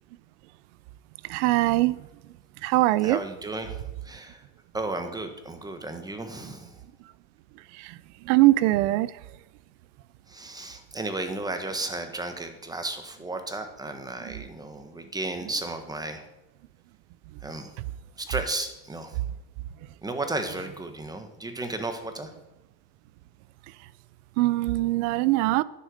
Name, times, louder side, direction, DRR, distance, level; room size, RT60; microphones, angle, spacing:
voice 1, 1.3-1.9 2.6-3.2 8.3-9.1 24.4-25.6, right 18 dB, 90° right, 0.6 m, -21 dB
voice 2, 3.0-3.8 4.0-4.4 4.7-6.8 10.3-16.2 17.4-17.7 18.2-19.2 20.0-22.3 25.4-25.6, right 2 dB, 10° right, 1.3 m, -34 dB
10.0 x 6.6 x 6.5 m
cardioid pair, 125°, 35 cm